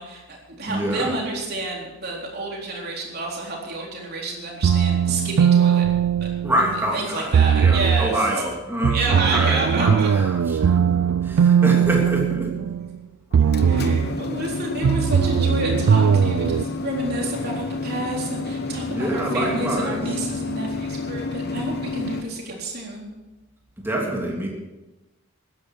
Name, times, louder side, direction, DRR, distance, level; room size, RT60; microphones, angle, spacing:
voice 1, 0.0-5.9 6.2-6.3 6.9-8.3 8.9-10.1 13.6-23.1, right 2 dB, 45° right, -2 dB, 3.9 m, -29 dB
voice 2, 0.7-1.2 6.4-12.5 18.9-20.0 23.8-24.5, right 1 dB, 10° right, -2 dB, 3.0 m, -26 dB
sound 1, 4.6-6.9 7.3-8.2 8.8-13.0 13.3-14.2 14.8-16.6, right 7 dB, 90° right, 0.4 m, -19 dB
sound 2, 13.3-22.2, left 3 dB, 50° left, 1.1 m, -30 dB
13.5 x 10.5 x 6.4 m, 1.1 s
head